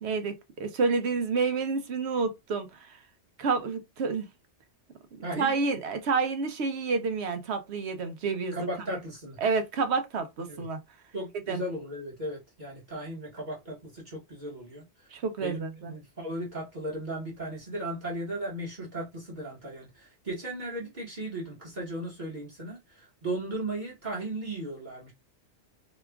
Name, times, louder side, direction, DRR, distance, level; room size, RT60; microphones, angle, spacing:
voice 1, 0.0-3.0 3.4-4.3 5.4-8.6 9.4-10.8 11.5-11.6 15.1-15.9, right 4 dB, 70° right, 1.0 m, -29 dB
voice 2, 5.2-5.5 8.5-9.4 10.5-10.7 11.1-14.8 15.4-25.1, right 1 dB, 40° right, 1.3 m, -36 dB
2.9 x 2.3 x 3.3 m
omnidirectional pair, 1.2 m